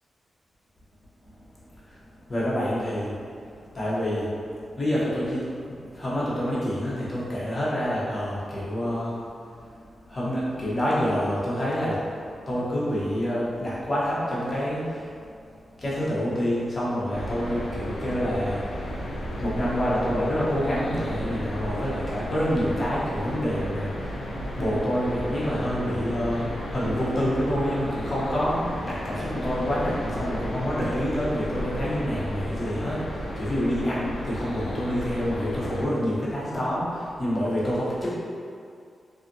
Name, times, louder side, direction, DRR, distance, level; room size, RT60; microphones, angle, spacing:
voice 1, 2.3-3.4 3.7-4.3 4.7-9.2 10.1-15.2 15.7-19.0 19.4-24.2 24.6-38.1, equal, 35° left, -8 dB, 0.9 m, -27 dB
sound 1, 17.1-35.9, equal, 85° left, 0.4 m, -33 dB
2.7 x 2.4 x 2.6 m, 2.3 s
cardioid pair, 70°, 0 cm